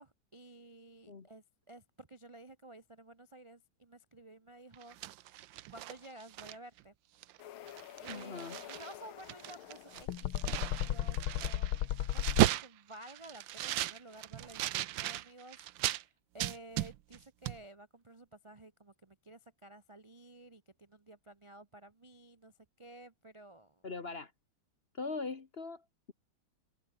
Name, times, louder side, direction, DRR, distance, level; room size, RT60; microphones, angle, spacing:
voice 1, 0.0-5.0 5.7-6.9 8.0-11.8 12.1-23.8, right 1 dB, 30° right, 0.5 m, -53 dB
sound 1, 4.7-6.8 7.2-7.4 7.7-8.9 9.2-16.0 16.4-17.2 17.5-17.6, right 14 dB, 70° right, 1.4 m, -35 dB
sound 2, 7.4-12.5, left 12 dB, 85° left, 1.8 m, -36 dB
voice 2, 8.1-8.6 23.8-24.3 24.9-26.1, left 3 dB, 35° left, 1.1 m, -41 dB
omnidirectional pair, 2.3 m